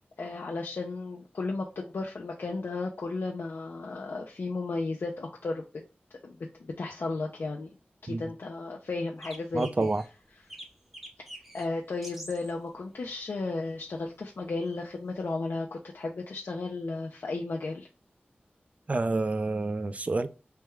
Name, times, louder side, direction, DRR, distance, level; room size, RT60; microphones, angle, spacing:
voice 1, 0.0-5.8 6.2-7.7 8.0-9.9 11.5-17.9, left 3 dB, 70° left, 0.4 m, -34 dB
sound 1, 9.2-10.1 10.5-11.7 12.0-12.5 13.8-13.9 15.2-15.3, right 1 dB, 5° right, 0.7 m, -45 dB
voice 2, 9.5-10.0 18.9-20.3, right 2 dB, 40° right, 0.3 m, -28 dB
3.3 x 2.2 x 3.0 m
wide cardioid pair, 65°, 4 cm